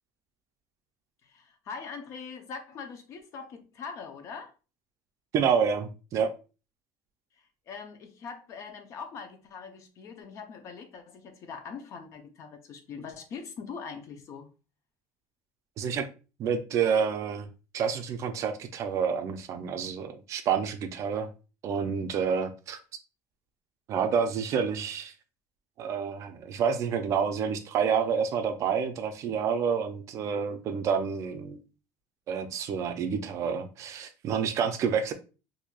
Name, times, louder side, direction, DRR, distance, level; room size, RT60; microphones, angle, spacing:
voice 1, 1.2-4.5 7.7-14.5, left 5 dB, 45° left, 0.6 m, -42 dB
voice 2, 5.3-6.3 15.8-16.1 16.4-17.5 17.7-21.3 21.6-22.8 23.9-25.1 25.8-31.6 32.3-35.1, right 6 dB, 45° right, 0.4 m, -28 dB
4.4 x 2.6 x 2.4 m
cardioid pair, 145°, 7 cm